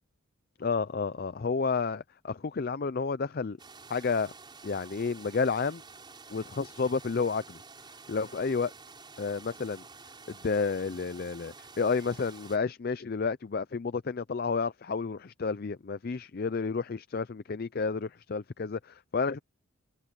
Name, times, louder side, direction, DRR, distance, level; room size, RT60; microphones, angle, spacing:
voice 1, 0.6-3.6 3.9-4.3 4.6-5.8 6.3-7.6 8.1-8.7 9.2-9.8 10.3-19.4, left 4 dB, 45° left, 0.4 m, -31 dB
sound 1, 3.6-12.6, right 4 dB, 20° right, 6.5 m, -50 dB
head